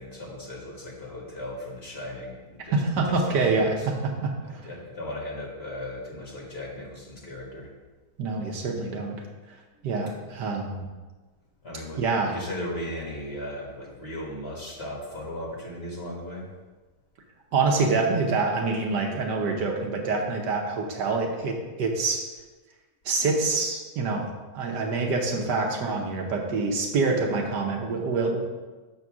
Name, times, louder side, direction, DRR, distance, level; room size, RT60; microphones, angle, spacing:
voice 1, 0.0-2.8 3.0-3.9 4.4-7.7 11.6-16.5, left 1 dB, 35° left, -3 dB, 1.6 m, -37 dB
voice 2, 2.7-3.7 4.2-4.3 8.2-9.2 9.8-10.8 12.0-12.3 17.5-22.3 23.0-24.3 24.5-28.4, right 3 dB, 75° right, 1 dB, 1.6 m, -26 dB
7.0 x 4.2 x 6.1 m, 1.3 s
omnidirectional pair, 1.9 m